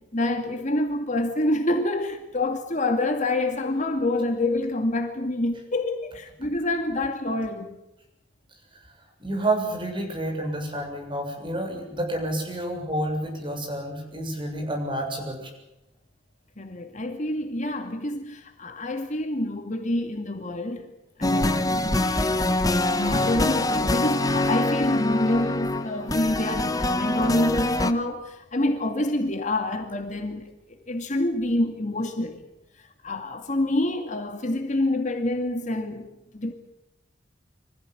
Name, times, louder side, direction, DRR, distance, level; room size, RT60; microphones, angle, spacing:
voice 1, 0.0-7.8 16.6-20.9 21.2-22.3 23.0-32.4 33.0-36.5, left 1 dB, 40° left, 2.3 m, -27 dB
voice 2, 9.2-15.5, right 1 dB, 25° right, 7.3 m, -29 dB
sound 1, 21.2-27.9, left 2 dB, 20° left, 1.2 m, -24 dB
25.0 x 15.5 x 9.8 m
head